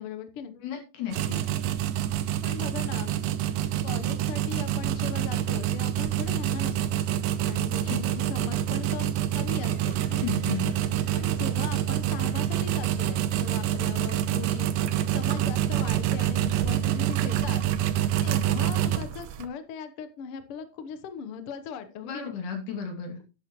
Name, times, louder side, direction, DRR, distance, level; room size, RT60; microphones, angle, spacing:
voice 1, 0.0-0.5 2.4-3.1 3.8-7.0 7.4-10.0 11.1-14.7 15.1-17.6 18.2-22.3, left 7 dB, 80° left, 9 dB, 1.2 m, -39 dB
voice 2, 0.6-1.4 7.8-8.0 10.1-10.8 22.0-23.2, left 7 dB, 60° left, 4 dB, 3.9 m, -34 dB
sound 1, 1.1-19.5, right 11 dB, 80° right, 2.5 m, -27 dB
sound 2, 9.5-14.1, left 2 dB, 40° left, 3.4 m, -49 dB
11.5 x 10.5 x 3.1 m, 0.31 s
omnidirectional pair, 4.1 m